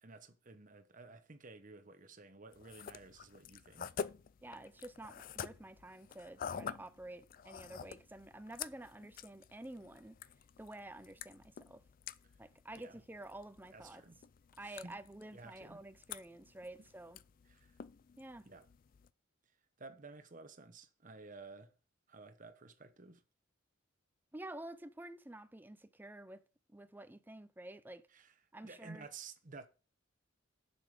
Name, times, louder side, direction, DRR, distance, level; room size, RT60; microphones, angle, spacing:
voice 1, 0.0-4.0 12.8-13.0 13.7-14.2 14.6-15.0 15.3-15.8 17.5-17.7 18.4-18.7 19.8-21.7 22.1-23.2 28.1-28.3 28.6-29.7, right 3 dB, 40° right, 1.0 m, -53 dB
sound 1, 2.5-19.1, left 7 dB, 45° left, 0.3 m, -49 dB
voice 2, 4.4-10.2 10.6-11.8 12.4-14.0 14.6-17.2 18.2-18.5 24.3-26.4 26.7-28.1 28.5-29.1, right 1 dB, 10° right, 0.5 m, -50 dB
7.4 x 7.0 x 4.8 m
head